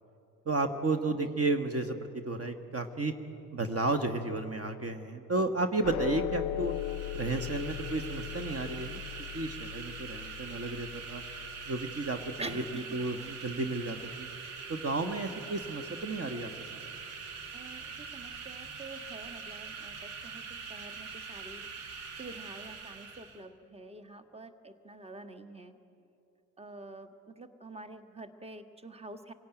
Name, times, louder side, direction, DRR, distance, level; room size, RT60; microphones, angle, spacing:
voice 1, 0.4-2.0 2.2-3.1 3.5-6.7 7.1-9.0 9.3-11.2 11.7-14.3 14.7-16.5, right 3 dB, 30° right, 8 dB, 1.6 m, -32 dB
sound 1, 5.8-12.4, left 15 dB, 40° left, 0.6 m, -39 dB
sound 2, 6.6-23.4, right 5 dB, 80° right, 2.2 m, -43 dB
voice 2, 12.4-13.3 17.5-25.8 26.6-29.3, right 2 dB, 15° right, 9 dB, 1.6 m, -47 dB
25.5 x 17.0 x 9.2 m, 2.8 s
hypercardioid pair, 55°, 46 cm